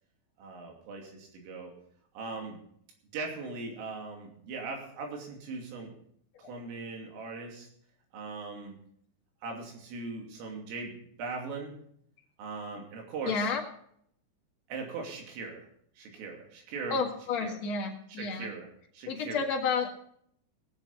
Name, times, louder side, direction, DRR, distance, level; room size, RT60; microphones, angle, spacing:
voice 1, 0.4-1.7 2.2-2.6 3.1-5.9 6.4-7.7 8.1-8.8 9.4-11.7 12.4-13.5 14.7-15.7 16.0-17.0 17.4-17.6 18.2-18.7 18.9-19.4, right 4 dB, 85° right, 1 dB, 5.3 m, -39 dB
voice 2, 13.2-13.6 16.9-18.5 19.1-19.9, left 5 dB, 55° left, -1 dB, 1.9 m, -31 dB
19.0 x 7.6 x 5.4 m, 0.68 s
omnidirectional pair, 5.7 m